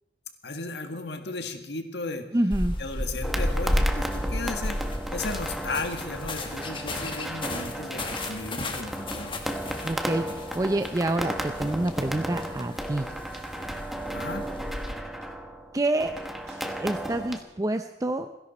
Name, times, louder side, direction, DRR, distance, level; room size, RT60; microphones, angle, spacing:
voice 1, 0.4-2.3 2.8-4.8 5.1-9.3 14.1-14.4, left 3 dB, 70° left, 6 dB, 1.8 m, -35 dB
voice 2, 2.3-2.8 9.8-13.1 15.7-16.1 16.8-18.3, right 1 dB, 20° right, 8 dB, 0.5 m, -27 dB
sound 1, 2.5-14.9, left 1 dB, 30° left, 1.7 m, -33 dB
sound 2, 3.2-17.4, equal, ahead, 1.2 m, -35 dB
sound 3, 7.7-7.8 8.2-8.3 9.1-9.5 10.9-11.3 12.4-12.5 12.8-13.6 14.6-14.7 15.0-15.3 16.1-16.6 17.0-17.2, right 4 dB, 60° right, 7.1 m, -56 dB
29.5 x 11.0 x 4.3 m, 0.96 s
head